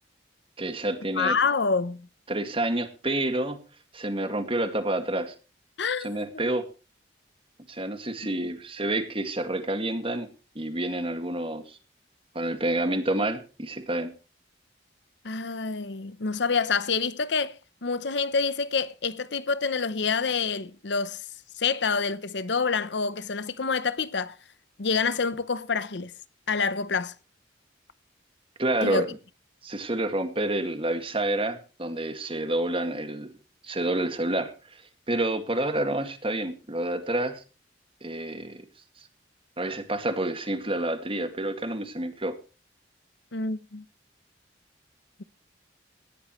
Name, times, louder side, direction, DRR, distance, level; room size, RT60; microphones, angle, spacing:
voice 1, 0.6-1.4 2.3-3.6 3.9-5.3 6.0-6.7 7.7-10.3 10.6-11.8 12.3-14.1 28.6-29.1 29.6-33.3 33.6-34.8 35.1-37.4 38.0-38.6 39.0-39.1 39.6-42.4, right 1 dB, 30° right, 2.1 m, -28 dB
voice 2, 1.2-2.1 5.8-6.1 6.3-6.5 15.2-21.2 21.6-24.4 24.8-26.1 26.5-27.1 28.8-29.1 43.3-43.8, left 5 dB, 70° left, 0.8 m, -27 dB
18.5 x 13.5 x 3.2 m
head